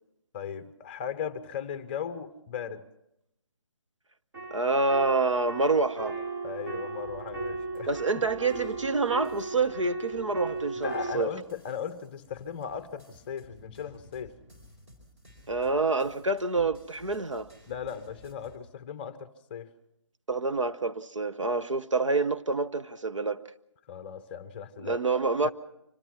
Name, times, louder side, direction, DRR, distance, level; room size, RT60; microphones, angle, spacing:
voice 1, 0.3-2.8 6.4-8.0 10.8-14.4 17.7-19.7 23.9-25.0 25.4-25.5, left 8 dB, 20° left, 0.8 m, -37 dB
sound 1, 4.3-11.1, right 3 dB, 45° right, 6.1 m, -36 dB
voice 2, 4.5-6.2 7.9-11.3 15.5-17.5 20.3-23.4 24.8-25.5, right 3 dB, 85° right, 1.1 m, -27 dB
sound 2, 7.0-18.6, left 1 dB, 25° right, 4.6 m, -55 dB
25.0 x 18.0 x 6.0 m
figure-of-eight pair, 155°, 16 cm